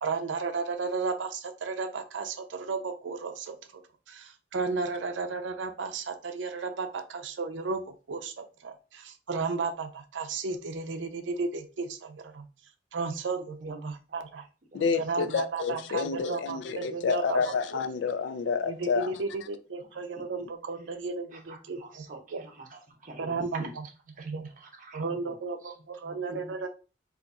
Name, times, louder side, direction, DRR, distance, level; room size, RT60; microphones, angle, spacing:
voice 1, 0.0-3.6 4.1-7.8 8.1-12.5 12.9-14.4 15.0-17.5 18.6-22.4 23.2-23.9 24.2-24.5 24.9-26.7, right 4 dB, 90° right, 0.5 m, -34 dB
voice 2, 13.6-14.2 14.7-14.9 20.4-20.5 21.3-23.7 24.2-24.3 24.6-25.3 25.6-25.7 26.0-26.5, right 2 dB, 50° right, 0.8 m, -45 dB
voice 3, 14.7-19.1, left 5 dB, 75° left, 0.4 m, -29 dB
4.0 x 2.5 x 2.3 m
head